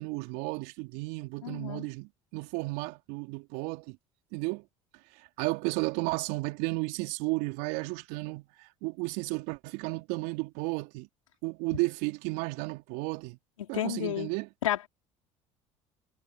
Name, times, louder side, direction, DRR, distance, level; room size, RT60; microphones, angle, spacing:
voice 1, 0.0-4.0 4.3-4.6 5.4-11.1 11.4-13.4 13.7-14.5, right 26 dB, 70° right, 3.3 m, -33 dB
voice 2, 1.4-1.9 13.7-14.3 14.6-14.9, left 11 dB, 85° left, 3.6 m, -31 dB
hypercardioid pair, 65°, 16 cm